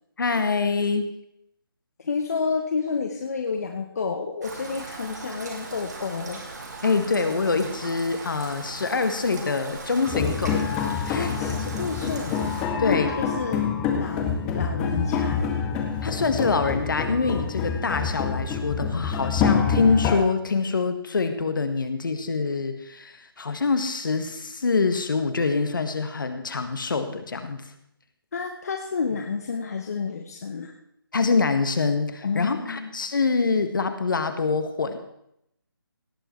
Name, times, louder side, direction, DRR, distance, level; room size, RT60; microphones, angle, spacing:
voice 1, 0.2-1.1 6.8-10.7 11.1-11.3 12.0-12.1 12.8-13.1 13.9-14.1 16.0-27.6 31.1-35.0, left 4 dB, 60° left, 8 dB, 1.7 m, -25 dB
voice 2, 2.0-6.4 11.1-12.4 12.8-13.6 13.9-15.5 28.3-30.7 32.2-32.9, left 5 dB, 45° left, 3 dB, 1.1 m, -30 dB
Rain, 4.4-12.7, right 3 dB, 45° right, 2.6 m, -38 dB
sound 1, 10.1-20.2, left 6 dB, 5° left, 0.6 m, -26 dB
17.5 x 8.0 x 4.5 m, 0.77 s
hypercardioid pair, 170°, 12 cm